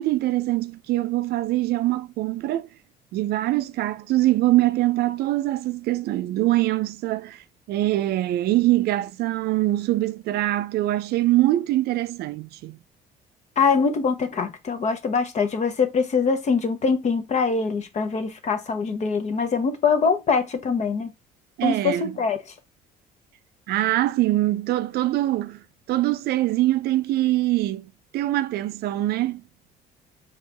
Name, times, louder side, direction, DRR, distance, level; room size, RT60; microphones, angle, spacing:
voice 1, 0.0-2.7 3.1-7.4 7.7-12.8 21.6-22.1 23.7-25.6 25.9-27.9 28.1-29.4, right 16 dB, 70° right, 0.5 m, -23 dB
voice 2, 13.6-21.1 21.6-22.4, left 5 dB, 45° left, 0.9 m, -23 dB
4.7 x 3.0 x 3.2 m
cardioid pair, 110°, 17 cm